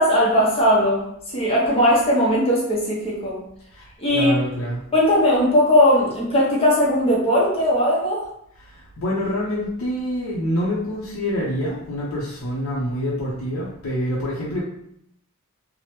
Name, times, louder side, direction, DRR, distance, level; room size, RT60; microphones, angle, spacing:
voice 1, 0.0-3.4 4.0-4.4 4.9-8.2, equal, 25° left, -5 dB, 0.7 m, -18 dB
voice 2, 3.7-4.8 8.6-14.6, equal, 80° left, -6 dB, 0.6 m, -26 dB
3.1 x 2.0 x 2.9 m, 0.72 s
head